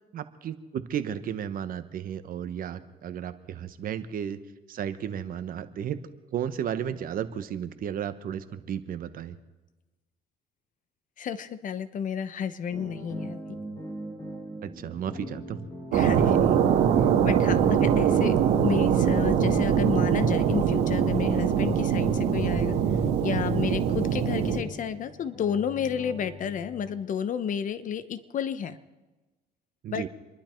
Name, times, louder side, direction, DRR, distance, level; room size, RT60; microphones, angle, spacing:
voice 1, 0.1-4.4 4.7-6.0 6.3-9.4 14.6-15.6 29.8-30.1, right 9 dB, 55° right, 12 dB, 1.1 m, -33 dB
voice 2, 11.2-13.4 15.9-16.4 17.2-22.8 23.2-28.8 29.9-30.0, left 7 dB, 50° left, 13 dB, 1.0 m, -31 dB
sound 1, 12.7-26.9, equal, 20° left, 5.5 m, -43 dB
sound 2, 15.9-24.6, right 8 dB, 85° right, 1.9 m, -23 dB
28.0 x 11.5 x 4.5 m, 1.2 s
cardioid pair, 110°, 17 cm